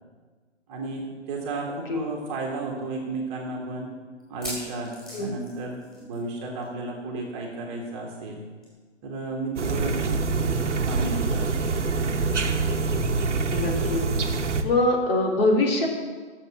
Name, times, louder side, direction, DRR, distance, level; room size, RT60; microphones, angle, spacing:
voice 1, 0.7-3.9 4.3-4.9 5.2-8.4 9.0-10.2 10.8-11.4, right 3 dB, 25° right, 0 dB, 1.7 m, -33 dB
sound 1, 4.2-6.3 6.6-6.8 7.1-7.2 8.6-8.7, equal, ahead, 4.4 m, -39 dB
sound 2, 9.6-14.6, right 4 dB, 75° right, 1.2 m, -25 dB
voice 2, 13.5-14.0 14.6-15.9, left 2 dB, 50° left, 0 dB, 2.8 m, -23 dB
12.5 x 7.2 x 6.1 m, 1.5 s
figure-of-eight pair, 145°, 36 cm